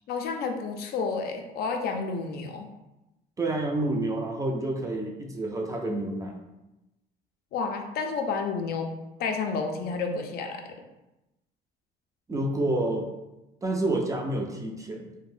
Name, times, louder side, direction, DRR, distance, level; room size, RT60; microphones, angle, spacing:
voice 1, 0.1-2.7 7.5-8.9 9.2-10.6, left 4 dB, 65° left, 3 dB, 0.4 m, -30 dB
voice 2, 3.4-6.4 12.3-13.1 13.6-15.1, right 2 dB, 20° right, 1 dB, 0.4 m, -28 dB
2.5 x 2.1 x 3.2 m, 0.96 s
cardioid pair, 110°, 17 cm